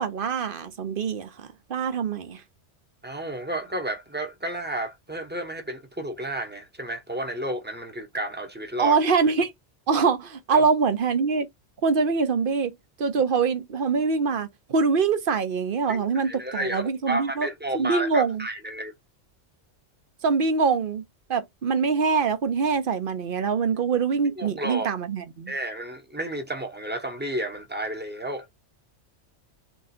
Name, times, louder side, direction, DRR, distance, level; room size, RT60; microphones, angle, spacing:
voice 1, 0.0-2.4 8.8-9.5 9.9-11.5 11.8-12.7 13.0-17.5 17.7-18.4 20.2-21.0 21.3-25.5, right 5 dB, 50° right, 0.9 m, -24 dB
voice 2, 3.0-9.0 10.5-10.6 15.9-18.9 24.2-24.9 25.5-28.5, right 1 dB, 10° right, 1.0 m, -32 dB
3.8 x 2.8 x 4.2 m
omnidirectional pair, 1.2 m